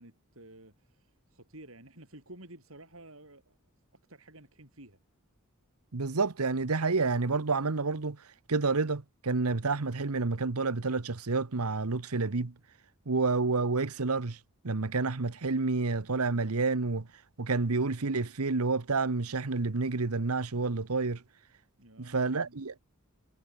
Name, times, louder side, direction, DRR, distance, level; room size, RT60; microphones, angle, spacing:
voice 1, 0.0-3.6 4.1-5.0 21.8-22.6, right 1 dB, 65° right, 6.8 m, -52 dB
voice 2, 5.9-8.2 8.5-12.5 13.1-14.4 14.6-17.1 17.4-21.2 22.0-22.8, right 3 dB, 85° right, 1.1 m, -29 dB
head